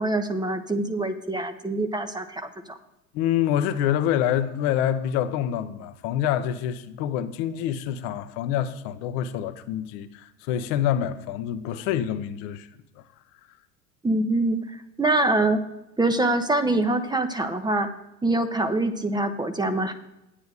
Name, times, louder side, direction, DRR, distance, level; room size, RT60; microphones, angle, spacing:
voice 1, 0.0-2.8 14.0-15.6 16.0-17.9 18.2-19.9, right 2 dB, 10° right, 0.9 m, -24 dB
voice 2, 3.1-12.7, left 10 dB, 50° left, 1.0 m, -26 dB
10.0 x 9.2 x 5.1 m
figure-of-eight pair, 80°, 45 cm